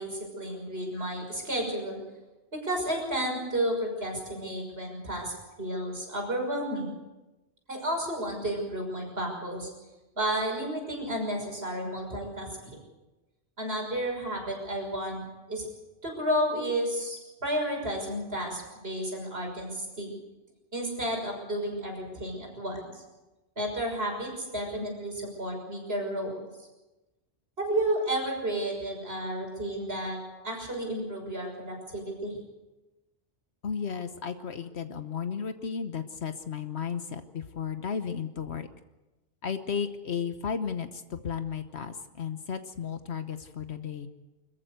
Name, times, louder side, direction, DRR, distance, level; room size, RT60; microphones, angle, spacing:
voice 1, 0.0-2.0 2.5-6.9 7.7-9.7 10.2-12.5 13.6-15.6 16.0-20.1 20.7-23.0 23.6-26.3 27.6-30.2 30.4-32.4, right 1 dB, 60° right, 1 dB, 6.4 m, -32 dB
voice 2, 33.6-38.7 39.4-44.1, left 6 dB, 70° left, 9 dB, 1.3 m, -34 dB
26.0 x 14.0 x 8.1 m, 1.1 s
omnidirectional pair, 1.1 m